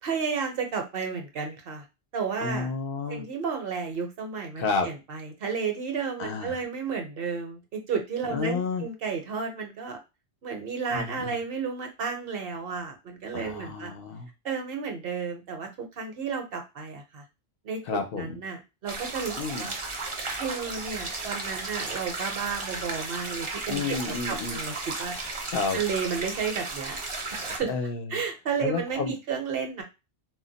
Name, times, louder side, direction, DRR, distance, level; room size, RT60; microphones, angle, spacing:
voice 1, 0.0-1.8 2.1-2.7 3.1-10.0 10.4-13.9 14.4-17.3 17.6-17.8 18.1-19.7 20.4-24.7 25.0-25.1 25.7-27.0 27.3-27.7 28.1-29.8, right 5 dB, 65° right, 4 dB, 0.9 m, -32 dB
voice 2, 2.4-3.2 4.6-4.9 6.2-6.6 8.3-8.8 10.9-11.3 13.3-14.3 17.9-18.4 19.4-19.7 23.7-24.6 25.5-25.8 27.4-28.2 28.6-29.2, left 4 dB, 70° left, 5 dB, 0.7 m, -31 dB
sound 1, 18.9-27.6, right 3 dB, 35° right, 0.6 m, -34 dB
2.2 x 2.1 x 3.8 m, 0.26 s
omnidirectional pair, 1.1 m